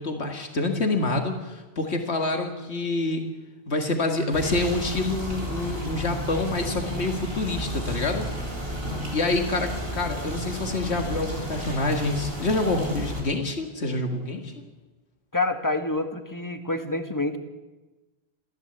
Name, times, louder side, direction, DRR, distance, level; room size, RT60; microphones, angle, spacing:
voice 1, 0.0-3.2 3.7-8.3 9.1-14.5, left 2 dB, 85° left, 4 dB, 2.3 m, -27 dB
sound 1, 4.3-13.2, equal, 60° right, 5.0 m, -33 dB
voice 2, 15.3-17.4, left 2 dB, 20° left, 6 dB, 1.8 m, -27 dB
28.0 x 15.0 x 8.1 m, 1.2 s
omnidirectional pair, 1.1 m